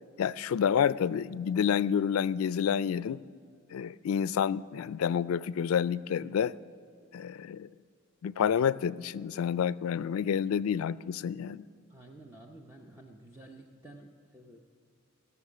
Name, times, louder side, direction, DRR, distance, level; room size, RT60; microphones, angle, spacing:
voice 1, 0.2-3.2 3.7-6.5 7.1-7.7 8.2-11.6, left 8 dB, 80° left, 0.3 m, -29 dB
voice 2, 11.9-14.6, right 1 dB, 10° right, 0.7 m, -51 dB
17.5 x 7.0 x 8.4 m
head